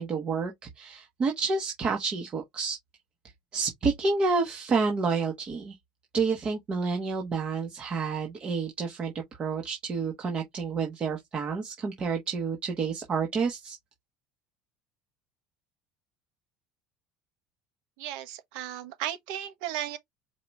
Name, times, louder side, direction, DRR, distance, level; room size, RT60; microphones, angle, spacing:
voice 1, 0.0-2.8 3.5-5.7 6.1-9.1 9.4-13.8, right 4 dB, 35° right, 1.2 m, -29 dB
voice 2, 18.0-20.0, right 12 dB, 80° right, 1.2 m, -35 dB
4.7 x 2.9 x 3.4 m
supercardioid pair, 120°, 3 cm